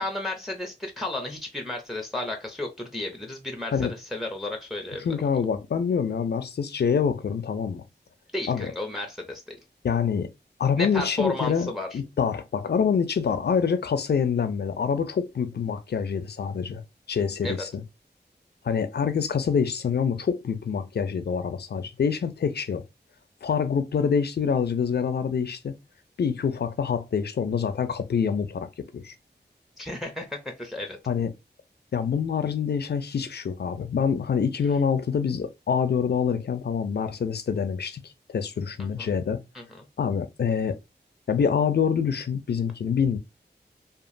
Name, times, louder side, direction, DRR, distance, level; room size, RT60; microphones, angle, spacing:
voice 1, 0.0-5.0 8.3-9.6 10.8-12.0 17.4-17.6 29.8-31.0 38.8-39.1 39.5-39.9, left 2 dB, ahead, 0.6 m, -33 dB
voice 2, 5.0-7.8 8.5-8.7 9.8-10.3 10.6-16.8 17.1-17.8 18.6-22.8 23.4-25.7 26.2-28.7 28.9-29.1 31.1-31.3 31.9-39.4 40.0-40.7 41.3-43.2, left 6 dB, 70° left, 0.5 m, -26 dB
2.9 x 2.4 x 2.5 m
wide cardioid pair, 85°, 18 cm